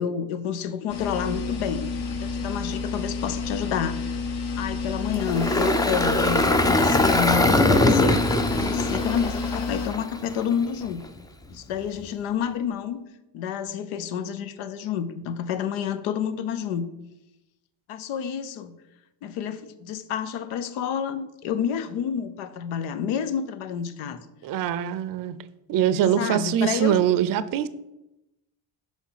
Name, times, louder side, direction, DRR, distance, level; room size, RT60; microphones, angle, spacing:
voice 1, 0.0-1.9 2.2-4.1 4.6-11.0 11.5-13.0 13.3-16.9 17.9-18.7 19.2-24.2 26.2-27.0, left 8 dB, 90° left, 11 dB, 0.8 m, -29 dB
sound 1, 0.9-9.9, left 4 dB, 55° left, 1.2 m, -30 dB
Engine, 5.1-10.4, left 1 dB, 10° left, 0.4 m, -22 dB
voice 2, 24.4-25.4 25.7-27.7, right 10 dB, 45° right, 15 dB, 0.5 m, -23 dB
6.3 x 4.7 x 5.7 m, 0.93 s
cardioid pair, 110°, 48 cm